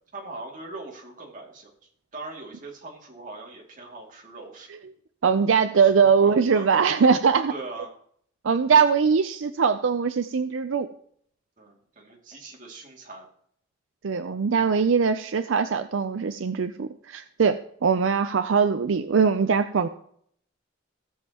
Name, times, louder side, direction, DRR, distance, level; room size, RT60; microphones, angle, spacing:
voice 1, 0.1-1.7 2.1-4.7 5.8-5.9 6.2-7.1 7.5-7.9 11.6-13.3, right 3 dB, 40° right, -1 dB, 2.4 m, -41 dB
voice 2, 5.2-7.5 8.4-10.9 14.0-19.9, right 6 dB, 80° right, 10 dB, 0.5 m, -21 dB
17.0 x 7.3 x 2.9 m, 0.64 s
head